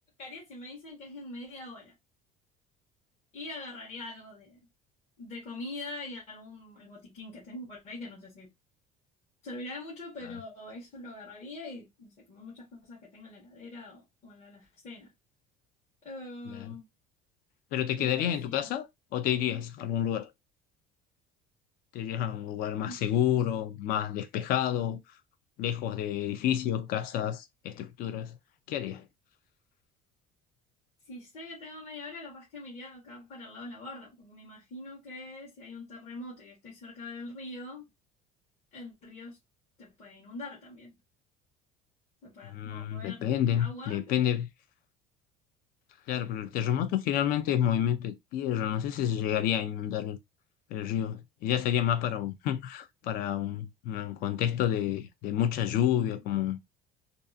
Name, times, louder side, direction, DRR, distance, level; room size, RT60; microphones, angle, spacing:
voice 1, 0.2-1.9 3.3-4.6 5.2-8.5 9.4-15.1 16.0-16.9 18.0-18.7 22.9-23.0 31.1-37.9 38.7-39.4 39.8-40.9 42.2-44.3, left 2 dB, 35° left, 1.1 m, -43 dB
voice 2, 17.7-18.9 19.1-20.3 21.9-25.0 25.6-28.3 28.7-29.0 42.5-44.5 46.1-50.2 50.7-56.7, left 10 dB, 55° left, 0.5 m, -29 dB
2.6 x 2.4 x 2.6 m
cardioid pair, 160°, 18 cm